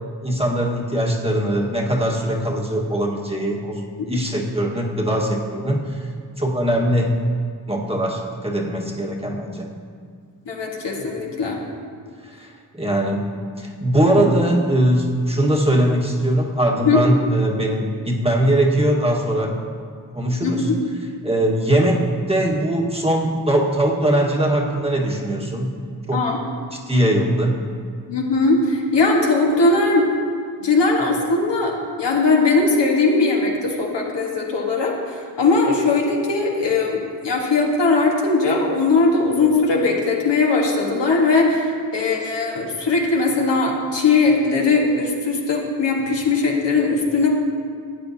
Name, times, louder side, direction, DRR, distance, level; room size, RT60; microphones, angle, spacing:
voice 1, 0.2-3.8 4.1-6.1 6.4-7.1 7.7-9.7 12.3-12.5 12.7-13.3 13.6-19.6 20.1-20.7 21.2-25.7 26.1-26.2 26.9-27.6, right 1 dB, 15° right, -2 dB, 1.5 m, -21 dB
voice 2, 10.5-11.6 16.8-17.0 20.4-20.8 26.1-26.4 28.1-30.1 30.6-47.3, left 3 dB, 65° left, -2 dB, 1.6 m, -19 dB
12.5 x 8.4 x 2.8 m, 2.1 s
supercardioid pair, 45°, 45 cm